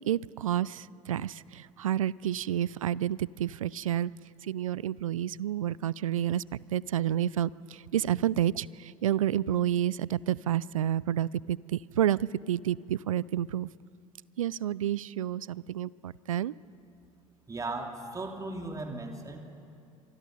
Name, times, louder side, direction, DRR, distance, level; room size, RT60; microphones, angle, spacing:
voice 1, 0.1-4.1 4.4-6.4 6.7-13.7 14.4-16.5, right 11 dB, 75° right, 22 dB, 0.4 m, -29 dB
voice 2, 17.5-19.4, right 2 dB, 20° right, 3 dB, 3.0 m, -37 dB
25.0 x 24.5 x 5.4 m, 2.5 s
figure-of-eight pair, 65°, 17 cm